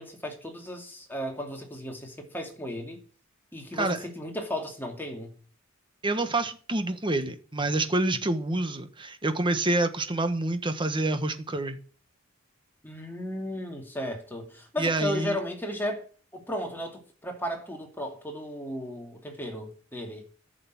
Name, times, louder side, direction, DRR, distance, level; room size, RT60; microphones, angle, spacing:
voice 1, 0.0-3.0 3.5-5.3 12.8-16.0 16.3-20.3, left 1 dB, 10° left, 2.6 m, -35 dB
voice 2, 6.0-11.8 14.8-15.4, right 2 dB, 25° right, 1.3 m, -27 dB
11.0 x 6.7 x 9.3 m
head